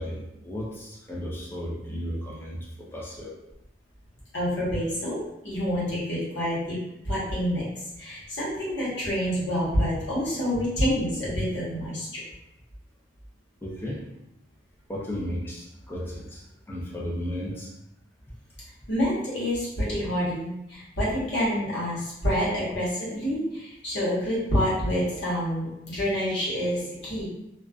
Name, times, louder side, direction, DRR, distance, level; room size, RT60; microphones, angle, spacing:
voice 1, 0.0-3.4 13.6-14.0 14.9-17.7 18.3-18.4, equal, 10° left, -5 dB, 0.5 m, -34 dB
voice 2, 4.3-5.2 5.4-6.8 7.0-7.6 8.0-12.1 18.9-27.3, equal, 60° left, -8 dB, 1.1 m, -27 dB
2.3 x 2.2 x 2.3 m, 0.86 s
head